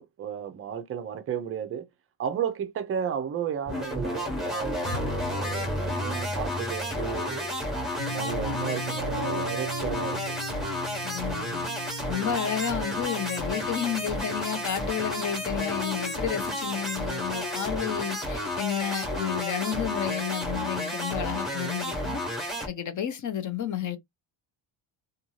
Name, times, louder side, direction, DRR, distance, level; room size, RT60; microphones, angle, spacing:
voice 1, 0.0-1.9 2.2-7.5 8.1-10.4, right 8 dB, 30° right, 0.4 m, -33 dB
sound 1, 3.7-22.7, left 1 dB, ahead, 0.8 m, -32 dB
sound 2, 4.8-11.3 13.9-20.3 21.2-21.8, left 1 dB, 75° left, 1.3 m, -39 dB
sound 3, 8.0-18.2, equal, 55° left, 1.0 m, -40 dB
voice 2, 11.0-11.7 12.1-22.2 22.7-24.0, left 9 dB, 40° left, 0.6 m, -31 dB
2.5 x 2.4 x 3.0 m
cardioid pair, 140°, 49 cm